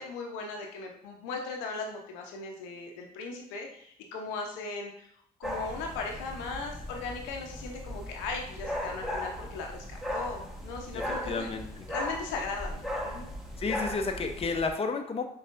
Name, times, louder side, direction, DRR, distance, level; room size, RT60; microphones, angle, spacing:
voice 1, 0.0-5.1 5.4-11.5 11.9-13.3, left 4 dB, 80° left, 2 dB, 0.7 m, -38 dB
sound 1, 5.4-14.7, left 1 dB, ahead, 1.1 m, -37 dB
voice 2, 10.9-11.7 13.6-15.3, left 4 dB, 30° left, 5 dB, 0.6 m, -31 dB
5.3 x 3.2 x 2.5 m, 0.68 s
hypercardioid pair, 50°, 20 cm